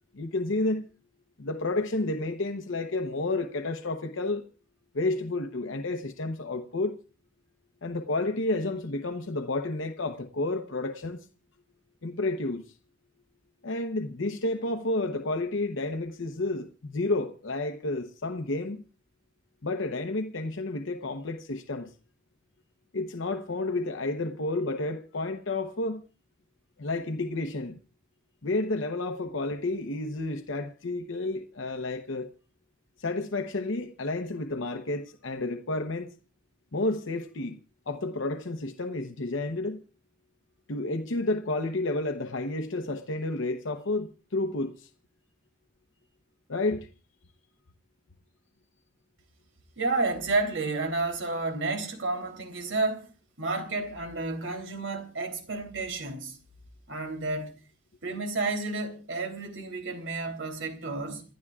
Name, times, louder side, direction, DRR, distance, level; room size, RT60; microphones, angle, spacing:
voice 1, 0.1-0.8 1.4-4.5 4.9-7.0 7.8-11.3 12.0-12.7 13.6-18.8 19.6-21.9 22.9-26.0 26.8-27.8 28.4-32.3 33.0-36.1 36.7-37.6 37.9-39.8 40.7-44.9 46.5-46.9, left 2 dB, 80° left, 0.9 m, -31 dB
voice 2, 49.8-53.1 53.4-56.4 56.9-57.5 58.0-61.2, right 3 dB, 85° right, 3.3 m, -31 dB
28.5 x 12.0 x 2.4 m
head